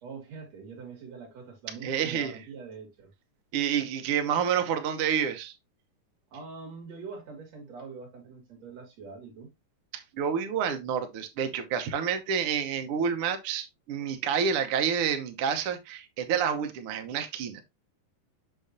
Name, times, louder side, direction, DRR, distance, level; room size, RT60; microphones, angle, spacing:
voice 1, 0.0-3.1 6.3-9.5, right 5 dB, 55° right, 3.4 m, -44 dB
voice 2, 1.8-2.4 3.5-5.5 9.9-17.6, right 7 dB, 80° right, 1.2 m, -29 dB
7.0 x 6.4 x 2.6 m
omnidirectional pair, 3.9 m